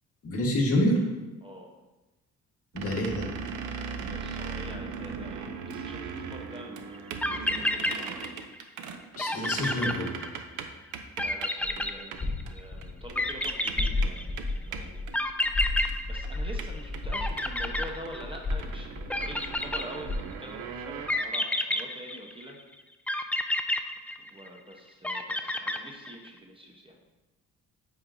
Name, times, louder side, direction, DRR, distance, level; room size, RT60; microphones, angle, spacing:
voice 1, 0.2-1.0 2.7-3.3 9.2-10.1, left 1 dB, 50° left, -2 dB, 1.6 m, -27 dB
voice 2, 1.4-1.7 4.1-8.2 11.2-15.1 16.1-22.6 24.2-27.0, equal, 15° right, 0 dB, 0.9 m, -45 dB
sound 1, 2.7-11.5 11.8-11.9 12.1-12.2 12.5-12.6 12.8-15.9 16.2-16.3 16.6-21.1, right 6 dB, 85° right, 0.6 m, -38 dB
sound 2, 6.9-7.0 7.2-8.6 8.9-9.0 9.2-10.6 11.2-12.6 13.2-14.5 15.1-16.8 17.1-18.5 19.1-20.3 21.1-22.5 23.1-24.6 25.0-26.3, left 1 dB, 5° left, 0.3 m, -30 dB
sound 3, 11.6-21.1, left 2 dB, 30° left, 0.8 m, -34 dB
8.4 x 4.7 x 2.7 m, 1.1 s
cardioid pair, 90°, 30 cm